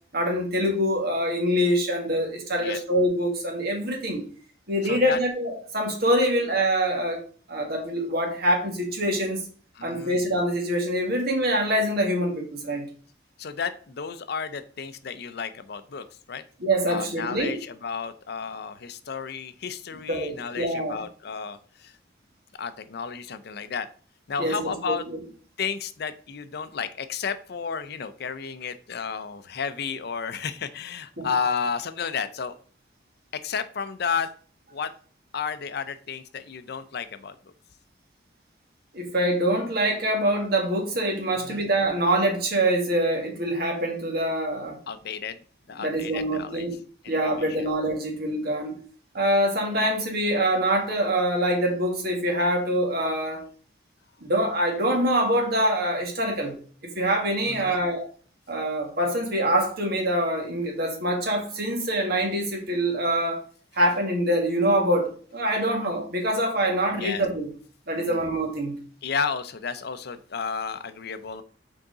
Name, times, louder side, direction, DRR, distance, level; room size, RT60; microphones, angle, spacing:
voice 1, 0.1-4.2 4.7-7.2 7.5-9.5 9.8-12.9 16.6-17.6 20.1-21.0 24.4-25.2 31.2-31.3 38.9-44.8 45.8-46.8 47.1-48.7 49.1-53.4 54.2-56.6 56.8-58.1 58.5-63.4 63.7-67.5 67.9-68.8, right 1 dB, 55° right, 1 dB, 1.9 m, -25 dB
voice 2, 4.8-5.2 9.8-10.2 13.4-16.4 16.9-21.9 22.6-23.9 24.3-25.0 25.6-32.5 33.4-34.3 34.7-34.9 35.3-37.3 41.5-41.7 44.9-45.4 45.7-46.7 47.0-47.5 57.5-57.8 66.9-67.2 68.0-68.2 69.0-71.4, left 6 dB, 60° left, 12 dB, 0.5 m, -32 dB
6.3 x 4.7 x 3.9 m, 0.43 s
head